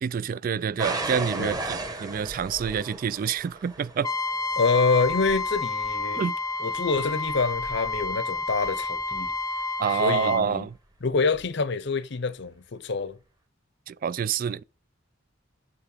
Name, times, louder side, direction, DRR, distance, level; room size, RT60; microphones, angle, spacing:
voice 1, 0.0-4.1 6.1-6.4 9.8-10.7 13.9-14.6, right 6 dB, 45° right, 0.3 m, -27 dB
sound 1, 0.8-9.6 10.3-10.8 11.3-11.5, right 2 dB, 20° right, 1.2 m, -37 dB
Trumpet, 4.0-10.4, left 3 dB, 20° left, 0.4 m, -30 dB
voice 2, 4.6-6.2 6.6-9.3 10.0-10.6 11.0-13.2, left 4 dB, 60° left, 0.7 m, -26 dB
7.7 x 5.7 x 3.9 m
head